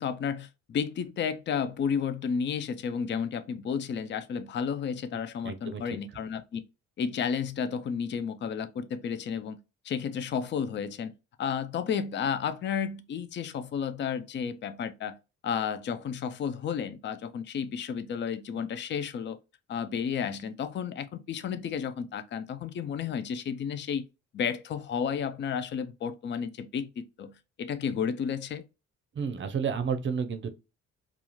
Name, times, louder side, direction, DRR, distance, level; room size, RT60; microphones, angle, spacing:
voice 1, 0.0-6.6 7.0-9.6 9.8-11.1 11.4-15.2 15.4-19.4 19.7-24.0 24.3-27.3 27.6-28.6, left 7 dB, 40° left, 0.4 m, -32 dB
voice 2, 5.4-5.8 29.1-30.5, right 6 dB, 40° right, 0.6 m, -31 dB
2.4 x 2.3 x 2.9 m
cardioid pair, 90°, 30 cm